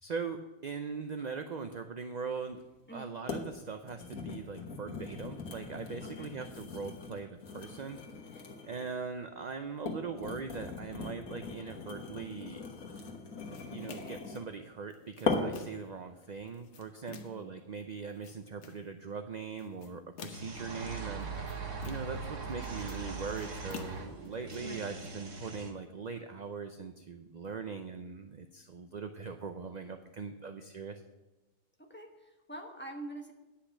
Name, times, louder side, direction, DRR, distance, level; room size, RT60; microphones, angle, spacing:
voice 1, 0.0-2.6 2.9-8.0 8.6-12.6 13.7-21.3 21.9-31.0, right 5 dB, 50° right, 7 dB, 0.5 m, -41 dB
sound 1, 2.5-2.6 3.3-3.5 3.8-9.0 9.6-14.5 15.3-15.7 16.2-16.5, left 4 dB, 80° left, 1.8 m, -39 dB
voice 2, 6.0-6.3 17.1-17.5 24.6-24.8 31.8-33.3, right 1 dB, 10° left, 2 dB, 1.2 m, -46 dB
sound 2, 13.5-14.3 14.9-15.9 16.5-17.5 18.0-18.9 19.6-20.6 21.2-22.2 22.5-24.6, left 6 dB, 60° left, 1.1 m, -49 dB
sound 3, 20.3-25.7, right 4 dB, 65° right, 1.6 m, -41 dB
10.0 x 5.7 x 7.2 m, 1.1 s
omnidirectional pair, 1.4 m